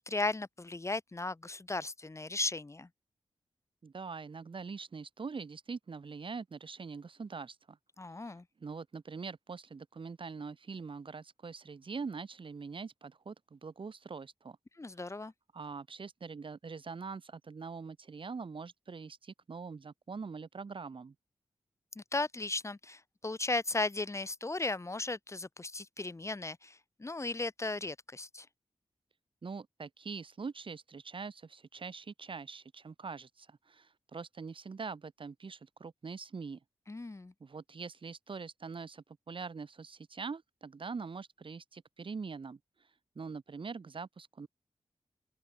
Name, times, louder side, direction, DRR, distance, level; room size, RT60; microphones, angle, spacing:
voice 1, 0.0-2.9 8.0-8.4 14.8-15.3 21.9-28.5 36.9-37.3, left 2 dB, 30° left, 1.7 m, -36 dB
voice 2, 3.8-7.8 8.2-14.6 15.2-21.1 29.4-36.6 37.4-42.6 43.1-44.5, right 5 dB, 60° right, 3.2 m, -43 dB
open air
cardioid pair, 60°, 10 cm